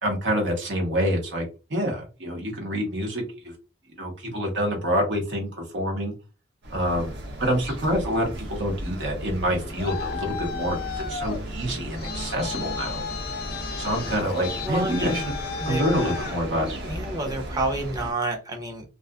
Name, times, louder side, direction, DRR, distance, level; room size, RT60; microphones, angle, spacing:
voice 1, 0.0-1.4 1.7-3.5 4.0-6.1 6.7-7.1 7.4-13.0 13.8-15.3 15.6-16.7, equal, 85° right, 1 dB, 1.0 m, -27 dB
sound 1, 6.6-18.1, right 1 dB, 65° right, 0.6 m, -35 dB
Traffic noise roadway noise, 9.4-17.1, left 7 dB, 55° left, 0.3 m, -35 dB
voice 2, 14.7-15.2 15.6-15.8 16.8-18.8, right 2 dB, 20° right, 3 dB, 0.6 m, -29 dB
2.4 x 2.3 x 2.3 m, 0.31 s
head